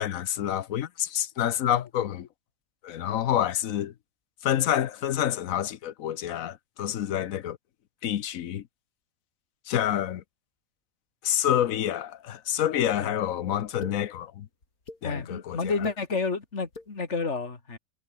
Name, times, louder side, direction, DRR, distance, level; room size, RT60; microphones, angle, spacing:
voice 1, 0.0-2.3 2.8-3.9 4.4-7.6 8.0-8.6 9.7-10.2 11.2-14.5 15.0-15.9, left 11 dB, 70° left, 1.2 m, -28 dB
sound 1, 11.9-12.0 12.8-13.0 13.6-14.0 14.6-15.0 15.7-16.0 16.6-16.9, left 3 dB, 90° left, 4.8 m, -40 dB
voice 2, 15.0-17.8, left 4 dB, 50° left, 3.0 m, -30 dB
omnidirectional pair, 1.5 m